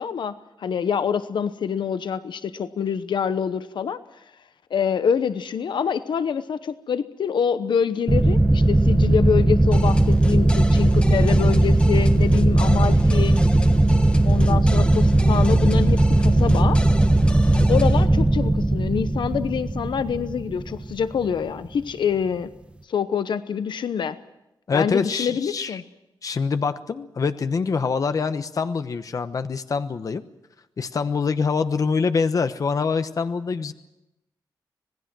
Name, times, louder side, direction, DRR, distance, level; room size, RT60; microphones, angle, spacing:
voice 1, 0.0-4.0 4.7-13.4 14.2-16.8 17.7-22.5 22.9-24.2 24.7-25.8, left 7 dB, 80° left, 12 dB, 0.9 m, -26 dB
sound 1, 8.1-21.3, right 2 dB, 15° right, 1.1 m, -18 dB
sound 2, 9.7-18.0, left 1 dB, 15° left, 1.4 m, -33 dB
voice 2, 17.5-17.9 24.7-25.8 26.2-30.2 30.8-33.7, left 5 dB, 45° left, 10 dB, 1.0 m, -25 dB
26.0 x 19.5 x 6.2 m, 0.93 s
wide cardioid pair, 150°, 8 cm